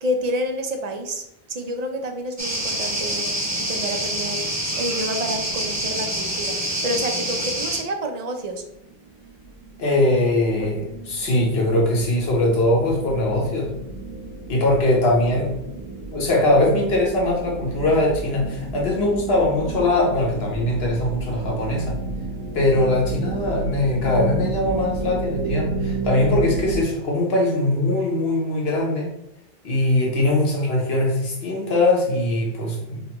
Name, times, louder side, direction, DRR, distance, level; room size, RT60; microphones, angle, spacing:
voice 1, 0.0-8.6 10.4-10.8, equal, 50° right, 4 dB, 0.6 m, -29 dB
sound 1, 2.4-7.8, right 1 dB, 20° right, 0.8 m, -26 dB
sound 2, 8.5-26.8, right 3 dB, 75° right, 1.1 m, -32 dB
voice 2, 9.8-13.7 14.5-15.5 16.1-22.0 22.5-29.1 29.6-33.0, left 1 dB, 75° left, -1 dB, 1.2 m, -21 dB
5.3 x 2.2 x 2.9 m, 0.82 s
omnidirectional pair, 1.0 m